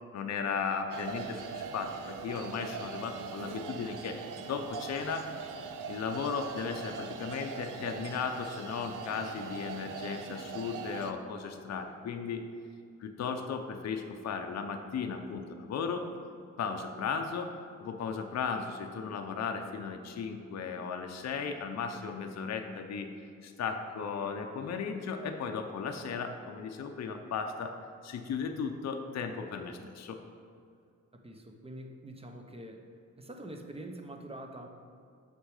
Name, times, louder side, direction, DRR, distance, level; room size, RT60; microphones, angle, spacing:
voice 1, 0.1-5.3 5.9-12.5 13.0-16.0 16.6-17.5 17.8-23.1 23.4-27.7 28.0-30.2, left 6 dB, 60° left, 5 dB, 0.6 m, -36 dB
sound 1, 0.9-11.1, right 5 dB, 90° right, 0.6 m, -41 dB
voice 2, 31.2-32.8 33.2-34.7, right 1 dB, 20° right, 4 dB, 0.7 m, -45 dB
6.3 x 6.2 x 4.8 m, 2.3 s
wide cardioid pair, 135°, 31 cm